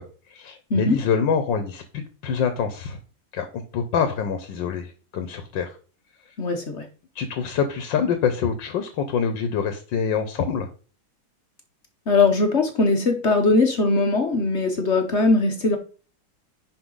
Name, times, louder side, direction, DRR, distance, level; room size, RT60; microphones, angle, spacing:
voice 1, 0.3-3.0 3.3-3.5 3.7-5.7 7.1-10.7, left 6 dB, 80° left, 8 dB, 1.6 m, -25 dB
voice 2, 6.4-6.8 12.1-15.8, left 3 dB, 45° left, 5 dB, 1.0 m, -20 dB
10.5 x 4.8 x 3.8 m, 0.38 s
omnidirectional pair, 2.0 m